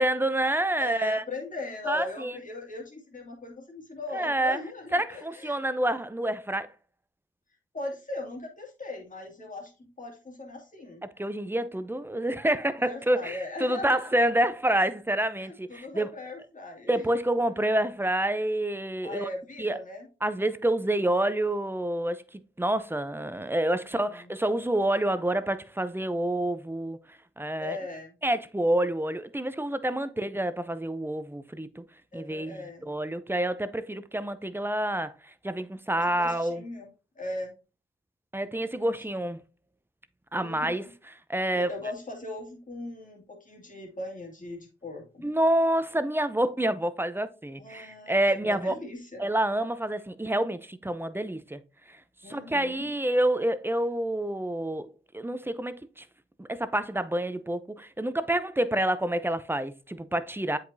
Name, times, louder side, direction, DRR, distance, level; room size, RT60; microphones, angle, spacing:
voice 1, 0.0-1.2 1.9-2.4 4.1-4.6 4.9-6.7 11.2-16.1 16.9-19.3 19.6-19.8 20.2-27.0 27.4-27.8 28.2-31.8 32.1-36.6 38.3-39.4 40.3-40.8 41.3-41.7 45.2-48.8 49.2-51.6 51.9-52.0 52.2-54.9 55.1-56.0 56.4-60.6, right 1 dB, 10° right, 0.6 m, -28 dB
voice 2, 0.8-5.7 7.7-11.0 12.9-14.1 15.4-17.0 19.0-20.1 23.8-24.2 27.6-28.2 32.1-32.9 36.0-36.9 37.2-37.5 40.3-40.9 41.5-45.3 47.6-48.2 48.4-49.2 52.2-52.9, left 2 dB, 40° left, 2.3 m, -39 dB
7.9 x 4.9 x 2.7 m
supercardioid pair, 45°, 20 cm